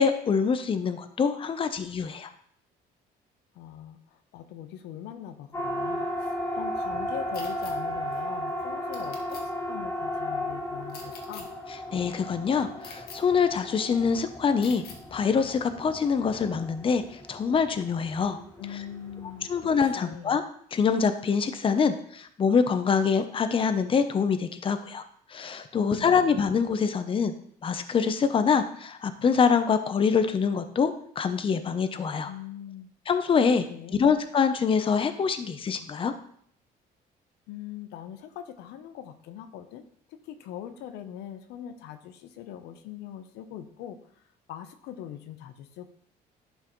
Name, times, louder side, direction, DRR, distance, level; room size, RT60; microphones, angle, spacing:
voice 1, 0.0-2.3 11.9-14.8 15.1-17.0 17.3-18.4 19.5-20.4 20.7-25.0 25.3-27.3 27.6-32.3 33.1-36.1, left 6 dB, 30° left, 9 dB, 0.7 m, -25 dB
voice 2, 3.5-11.5 18.6-19.5 19.8-20.4 25.7-26.4 32.2-32.9 33.7-34.1 37.5-44.0 44.5-45.9, left 10 dB, 90° left, 9 dB, 0.8 m, -42 dB
Siren, 5.5-19.8, left 1 dB, 15° left, 2.2 m, -35 dB
sound 1, 7.3-7.7 8.9-9.4 10.9-11.4 12.8-13.2 14.6-15.0, left 5 dB, 65° left, 1.5 m, -44 dB
11.0 x 5.5 x 3.1 m, 0.63 s
cardioid pair, 110°, 17 cm